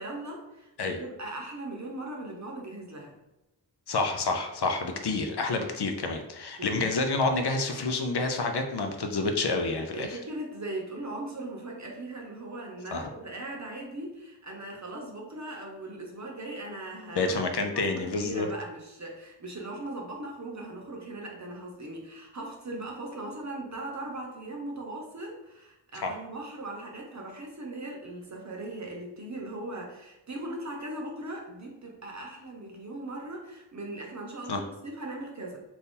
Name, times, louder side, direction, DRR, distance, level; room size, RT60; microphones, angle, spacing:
voice 1, 0.0-3.2 6.6-6.9 9.9-35.6, right 2 dB, 40° right, 0 dB, 0.8 m, -39 dB
voice 2, 3.9-10.2 12.9-13.1 17.2-18.5 25.9-26.1 34.5-34.6, left 3 dB, 65° left, 4 dB, 0.6 m, -28 dB
2.8 x 2.6 x 3.6 m, 0.96 s
wide cardioid pair, 50°, 44 cm